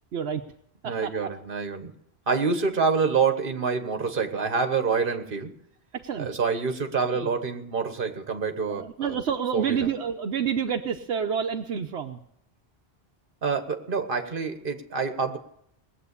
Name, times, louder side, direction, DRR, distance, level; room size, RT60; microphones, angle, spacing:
voice 1, 0.8-1.9 2.3-5.5 6.2-9.2 9.5-9.9 13.4-15.4, right 5 dB, 55° right, 7 dB, 1.5 m, -27 dB
voice 2, 5.9-6.3 7.1-7.3 8.7-12.2, right 7 dB, 80° right, 4 dB, 1.1 m, -28 dB
19.5 x 8.0 x 8.3 m, 0.72 s
omnidirectional pair, 1.1 m